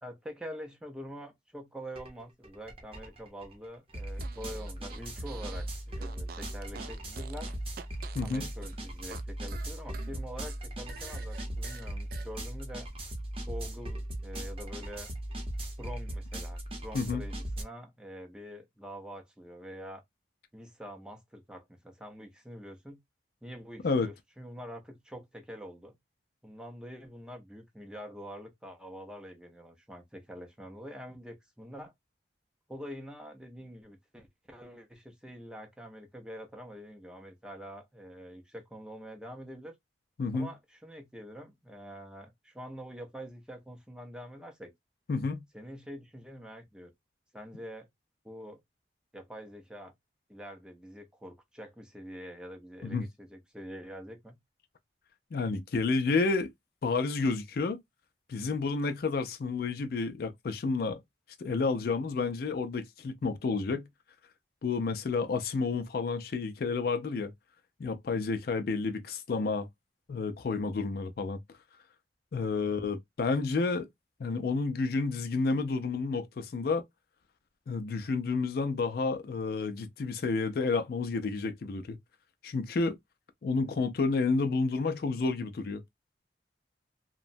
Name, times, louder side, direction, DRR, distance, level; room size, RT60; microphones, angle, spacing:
voice 1, 0.0-7.5 8.2-12.9 13.5-15.1 15.8-20.0 20.5-23.0 23.4-26.0 26.4-31.9 32.7-39.7 40.3-44.7 45.5-46.9 47.3-47.9 48.2-48.6 49.1-49.9 50.3-54.4 83.6-83.7, equal, 5° right, 0.5 m, -45 dB
sound 1, 2.0-2.1 2.4-17.6, right 1 dB, 30° right, 0.8 m, -38 dB
Fart, 4.1-5.7 6.0-9.2 9.5-12.3, right 6 dB, 55° right, 0.3 m, -48 dB
voice 2, 8.2-8.5 16.9-17.2 23.8-24.1 40.2-40.5 45.1-45.4 52.8-53.1 55.3-56.5 56.8-57.8 58.3-61.0 61.4-63.9 64.6-67.3 67.8-69.7 70.1-71.4 72.3-73.9 74.2-76.8 77.7-82.0 82.4-83.0 83.4-85.8, left 4 dB, 60° left, 0.4 m, -30 dB
2.8 x 2.1 x 2.5 m
head